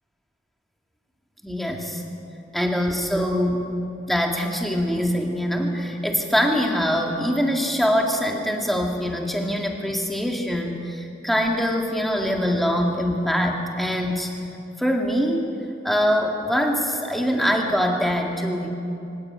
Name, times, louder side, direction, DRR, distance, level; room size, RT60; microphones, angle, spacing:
voice 1, 1.4-2.0 2.5-3.7 4.1-14.3 14.8-15.5 15.8-18.7, equal, ahead, 1 dB, 2.0 m, -23 dB
25.5 x 15.5 x 8.8 m, 2.8 s
head